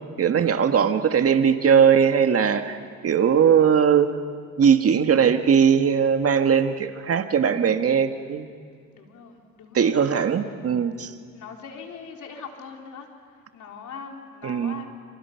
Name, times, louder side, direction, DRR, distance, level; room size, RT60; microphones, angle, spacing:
voice 1, 0.2-2.8 3.0-4.1 4.6-8.5 9.7-11.1 14.4-14.8, right 7 dB, 50° right, 7 dB, 1.8 m, -19 dB
voice 2, 8.9-9.9 11.3-13.1 13.5-14.9, left 6 dB, 70° left, 2 dB, 3.7 m, -41 dB
28.0 x 26.5 x 5.9 m, 2.1 s
cardioid pair, 90°, 30 cm